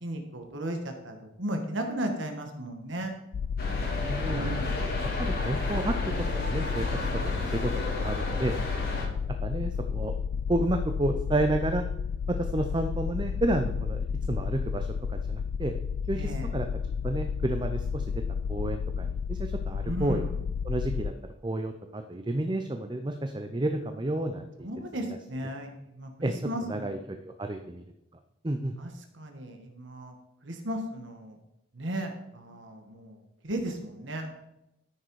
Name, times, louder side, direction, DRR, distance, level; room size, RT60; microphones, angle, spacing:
voice 1, 0.0-3.1 4.3-4.7 16.1-16.5 19.8-20.3 24.6-27.0 28.8-28.9 29.2-30.1 30.4-31.4 31.7-34.3, right 1 dB, 75° right, 4 dB, 1.5 m, -35 dB
sound 1, 3.3-21.1, left 6 dB, 85° left, 0.4 m, -32 dB
sound 2, 3.6-9.1, left 1 dB, 50° left, 2.8 m, -33 dB
voice 2, 4.1-6.8 7.2-8.5 9.4-10.1 10.5-11.8 12.3-15.8 16.1-16.7 17.0-18.2 18.5-20.3 20.6-21.1 21.4-24.7 26.2-26.3 26.6-27.8 28.4-28.7, right 1 dB, 25° right, 6 dB, 0.6 m, -31 dB
13.0 x 6.6 x 4.8 m, 0.85 s
head